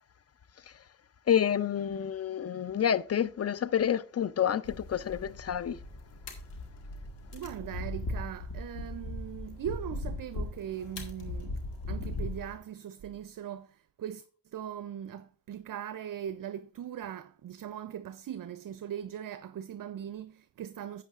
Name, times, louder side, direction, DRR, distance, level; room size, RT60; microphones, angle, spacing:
voice 1, 1.3-5.8, left 9 dB, 35° left, 0.5 m, -28 dB
sound 1, 4.6-12.5, left 2 dB, 80° left, 1.7 m, -39 dB
voice 2, 7.3-21.0, right 10 dB, 50° right, 0.5 m, -40 dB
11.5 x 8.1 x 2.4 m
cardioid pair, 55°, 42 cm